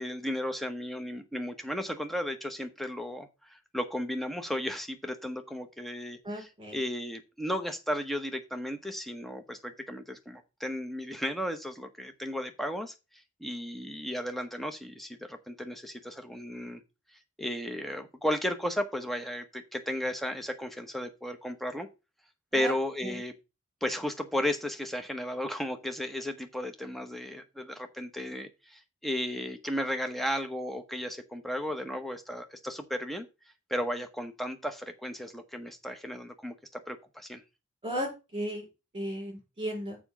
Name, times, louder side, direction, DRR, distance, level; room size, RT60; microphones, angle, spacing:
voice 1, 0.0-16.8 17.4-21.9 22.5-23.3 23.8-33.3 33.7-37.4, equal, ahead, 7 dB, 0.9 m, -34 dB
voice 2, 6.2-6.8 22.5-22.7 23.0-23.2 37.8-38.6 38.9-40.0, equal, 25° right, 1 dB, 4.3 m, -35 dB
6.9 x 5.0 x 6.7 m, 0.28 s
head